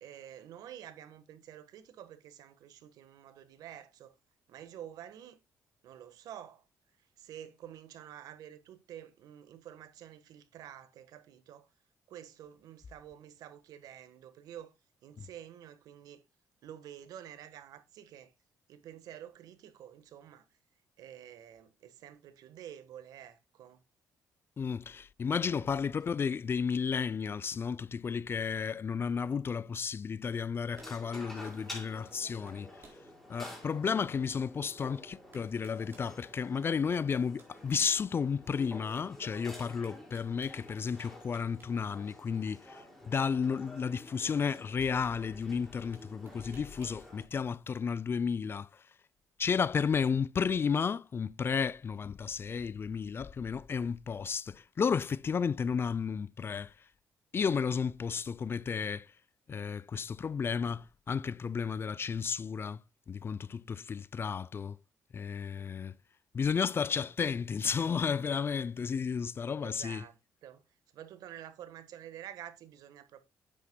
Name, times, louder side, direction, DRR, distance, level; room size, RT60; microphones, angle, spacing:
voice 1, 0.0-4.1 4.5-5.4 5.8-6.6 7.2-11.7 12.1-14.7 15.0-16.2 16.6-18.3 18.7-20.4 21.0-23.8 25.4-25.7 65.6-65.8 69.6-70.6 70.9-73.2, right 10 dB, 80° right, 1.3 m, -49 dB
voice 2, 24.6-32.7 33.3-48.7 49.4-56.7 57.3-59.1 59.5-62.8 63.1-64.8 65.1-66.0 66.3-70.0, left 6 dB, 40° left, 0.4 m, -33 dB
sound 1, 30.3-30.5 30.8-31.3 32.1-32.2 32.5-33.0 33.6-33.7 34.8-34.9 35.3-36.1 36.8-38.5 39.8-40.6 41.0-41.7 42.0-42.2 43.6-43.7 44.2-45.0 45.9-47.0, right 3 dB, 35° right, 4.4 m, -59 dB
sound 2, 30.7-47.2, left 1 dB, ahead, 5.3 m, -50 dB
9.9 x 8.6 x 2.2 m
cardioid pair, 85°, 6 cm